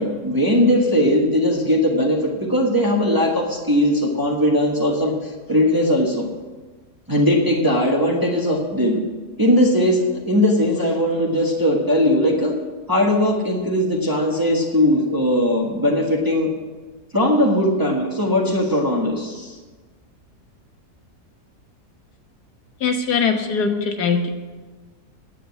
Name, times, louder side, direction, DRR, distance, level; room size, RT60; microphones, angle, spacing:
voice 1, 0.0-6.3 7.1-9.0 9.4-12.5 12.9-16.5 17.1-19.5, left 1 dB, 15° right, -1 dB, 1.3 m, -19 dB
voice 2, 22.8-24.3, left 5 dB, 80° left, 4 dB, 1.8 m, -21 dB
9.8 x 7.8 x 8.3 m, 1.3 s
omnidirectional pair, 1.7 m